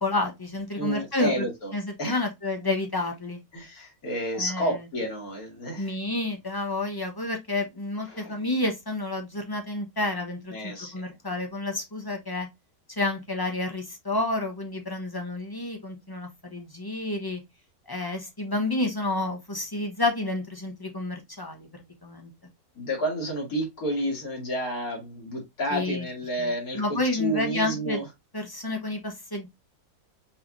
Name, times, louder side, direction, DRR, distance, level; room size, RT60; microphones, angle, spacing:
voice 1, 0.0-1.4 1.7-3.4 4.3-4.7 5.8-12.5 13.0-17.4 17.9-22.3 25.7-26.1 26.4-28.0 28.3-29.5, left 2 dB, 20° left, 0.9 m, -30 dB
voice 2, 0.8-1.7 2.0-2.2 3.5-5.9 8.1-8.4 10.5-11.1 22.8-28.1, equal, 70° left, 2.5 m, -30 dB
5.6 x 3.3 x 2.6 m
omnidirectional pair, 1.6 m